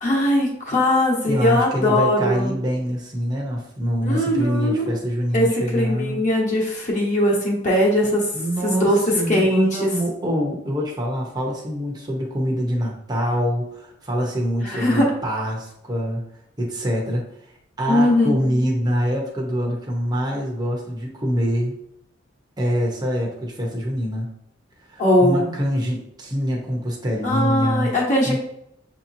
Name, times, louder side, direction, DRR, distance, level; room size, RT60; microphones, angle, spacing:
voice 1, 0.0-2.6 4.0-4.9 5.3-8.3 8.6-9.9 14.6-15.1 17.9-18.7 25.0-25.5 27.2-28.4, left 1 dB, 40° left, -2 dB, 1.1 m, -20 dB
voice 2, 1.2-6.2 8.3-16.2 16.6-17.3 17.8-21.7 22.6-24.3 24.9-27.9 28.2-28.4, equal, 20° right, -2 dB, 0.8 m, -25 dB
6.4 x 2.9 x 2.6 m, 0.76 s
head